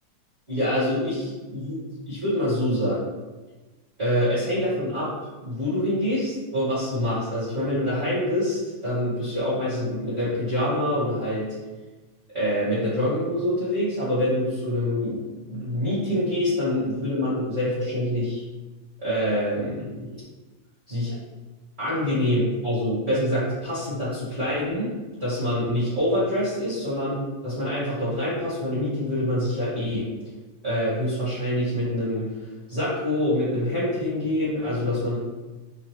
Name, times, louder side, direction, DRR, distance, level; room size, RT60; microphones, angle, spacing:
voice 1, 0.5-1.7 2.1-3.0 4.0-5.1 5.4-11.5 12.3-15.2 15.5-18.4 19.0-20.1 20.9-21.1 21.8-24.9 25.2-30.1 30.6-32.3 32.7-35.2, left 1 dB, 35° right, -11 dB, 1.1 m, -25 dB
5.0 x 2.4 x 3.1 m, 1.2 s
omnidirectional pair, 3.4 m